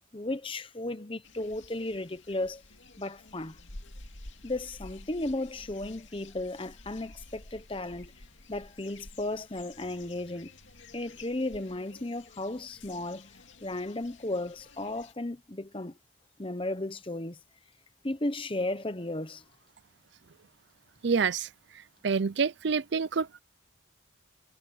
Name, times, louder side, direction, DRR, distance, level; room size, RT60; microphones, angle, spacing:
voice 1, 0.1-2.6 3.0-3.6 4.4-8.1 8.5-10.5 10.9-13.3 13.6-16.0 16.4-17.4 18.0-19.4, left 2 dB, 25° left, 1.0 m, -34 dB
sound 1, 1.2-15.1, left 2 dB, 70° left, 2.4 m, -51 dB
voice 2, 21.0-21.5 22.0-23.4, right 5 dB, 60° right, 0.5 m, -27 dB
head